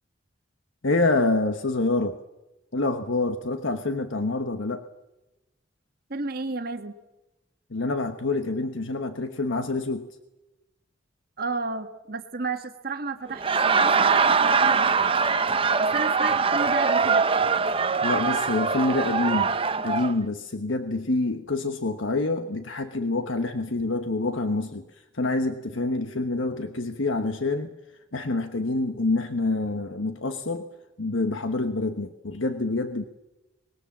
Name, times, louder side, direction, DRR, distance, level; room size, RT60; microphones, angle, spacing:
voice 1, 0.8-2.2 2.7-4.8 7.7-10.1 18.0-19.6 19.8-27.7 28.1-30.7 31.0-33.0, left 2 dB, 85° left, 8 dB, 1.3 m, -27 dB
voice 2, 6.1-6.9 11.4-15.1 15.8-17.2, right 3 dB, 50° right, 6 dB, 1.7 m, -32 dB
Laughter, 13.3-20.1, right 5 dB, 30° right, 0.8 m, -22 dB
25.0 x 21.5 x 7.4 m, 0.98 s
head